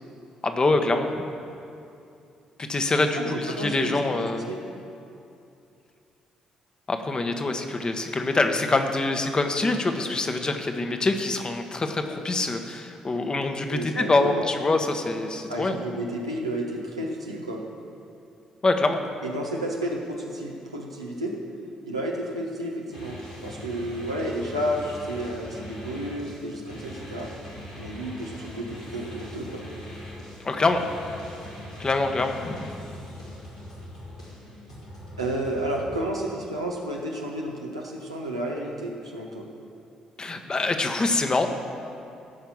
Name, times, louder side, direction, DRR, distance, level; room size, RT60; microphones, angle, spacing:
voice 1, 0.4-1.2 2.6-4.5 6.9-15.8 18.6-19.0 30.4-30.8 31.8-33.0 40.2-41.5, left 2 dB, 30° left, 5 dB, 1.2 m, -25 dB
voice 2, 3.1-4.0 4.5-4.6 13.7-14.5 15.5-17.6 19.2-21.4 21.8-27.3 27.8-29.6 35.2-39.5, right 1 dB, 85° right, -2 dB, 1.1 m, -31 dB
sound 1, 22.9-36.0, left 1 dB, 90° left, 2.4 m, -41 dB
15.0 x 5.8 x 7.1 m, 2.6 s
figure-of-eight pair, 40°, 3 cm